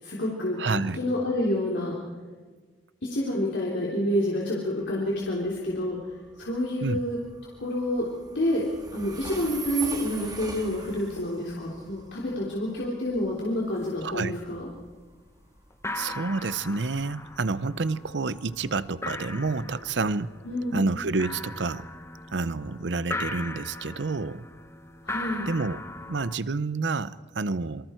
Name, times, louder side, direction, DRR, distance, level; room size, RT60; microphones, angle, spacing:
voice 1, 0.0-2.0 3.0-7.2 7.6-8.0 8.4-8.6 8.9-14.7 20.5-20.9 25.0-25.5, left 1 dB, 75° left, -3 dB, 3.5 m, -28 dB
voice 2, 0.6-1.0 6.8-7.0 14.0-14.4 15.9-20.3 20.7-21.9 22.3-24.4 25.5-25.8 26.1-27.9, right 3 dB, 75° right, 16 dB, 0.7 m, -29 dB
Train, 4.8-19.6, right 4 dB, 20° right, 2.2 m, -43 dB
sound 1, 13.2-13.3 13.6-14.1 14.4-15.0 15.3-15.4 15.7-26.4, left 2 dB, 15° left, 1.1 m, -39 dB
27.5 x 23.5 x 4.5 m, 1.4 s
head